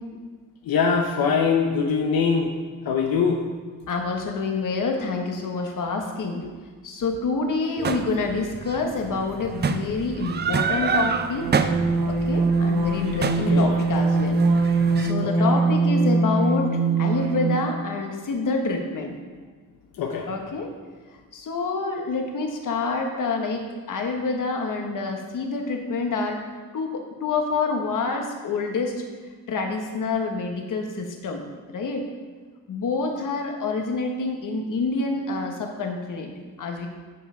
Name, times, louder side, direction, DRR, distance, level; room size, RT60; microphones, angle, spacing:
voice 1, 0.7-2.5 2.8-3.4 6.4-6.5 13.3-13.8 15.2-15.3 20.0-20.3, left 5 dB, 90° left, 2 dB, 0.8 m, -23 dB
voice 2, 3.9-6.4 6.8-11.5 12.1-14.4 15.0-16.7 17.0-19.1 20.3-20.7 21.3-26.4 26.7-29.0 29.5-31.4 31.7-32.0 32.7-36.3 36.6-36.9, left 3 dB, 60° left, 3 dB, 1.3 m, -27 dB
sound 1, 7.8-15.1, right 5 dB, 30° right, 0.4 m, -29 dB
sound 2, 10.9-17.7, right 3 dB, 85° right, 1.1 m, -22 dB
9.4 x 5.5 x 5.0 m, 1.5 s
wide cardioid pair, 135°, 35 cm